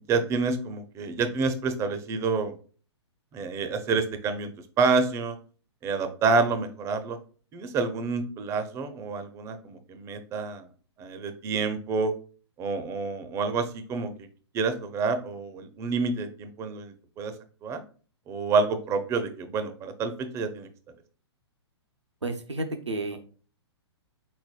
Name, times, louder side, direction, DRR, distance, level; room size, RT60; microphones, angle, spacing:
voice 1, 0.1-2.5 3.3-4.5 4.8-5.4 5.8-7.2 7.5-10.7 11.0-12.1 12.6-14.1 14.5-17.3 17.6-17.8 18.3-20.7, right 4 dB, 20° right, 9 dB, 0.5 m, -28 dB
voice 2, 22.2-23.2, right 2 dB, 90° right, 5 dB, 0.7 m, -31 dB
4.2 x 4.1 x 2.2 m, 0.40 s
figure-of-eight pair, 120°, 15 cm